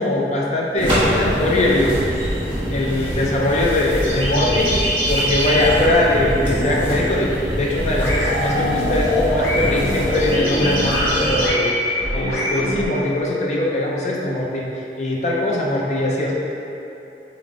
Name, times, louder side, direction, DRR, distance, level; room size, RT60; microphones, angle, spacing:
voice 1, 0.0-2.4 2.7-4.8 5.1-14.7 15.0-16.3, left 1 dB, 40° left, -3 dB, 0.5 m, -21 dB
sound 1, 0.8-11.5, equal, 30° right, 1.2 m, -24 dB
sound 2, 7.7-12.8, equal, 65° left, 1.2 m, -24 dB
3.9 x 3.7 x 3.6 m, 2.9 s
head